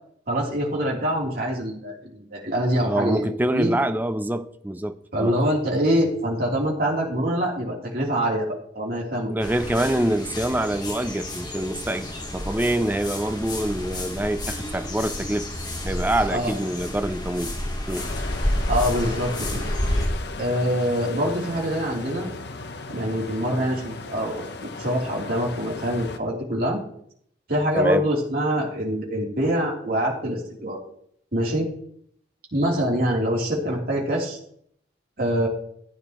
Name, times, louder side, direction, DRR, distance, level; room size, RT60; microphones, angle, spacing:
voice 1, 0.3-3.3 3.5-3.7 5.1-9.4 16.3-16.5 18.7-19.6 20.4-22.3 22.9-26.8 27.5-30.8 31.3-31.7 32.5-34.4 35.2-35.5, equal, 50° right, 3.3 m, -25 dB
voice 2, 2.8-5.4 9.3-15.5 15.8-17.6 17.9-18.1 27.7-28.1, right 1 dB, 10° right, 0.5 m, -25 dB
sound 1, 9.4-20.1, left 1 dB, 25° left, 1.9 m, -30 dB
sound 2, 18.0-26.2, left 3 dB, 60° left, 0.9 m, -36 dB
14.5 x 9.6 x 3.0 m
head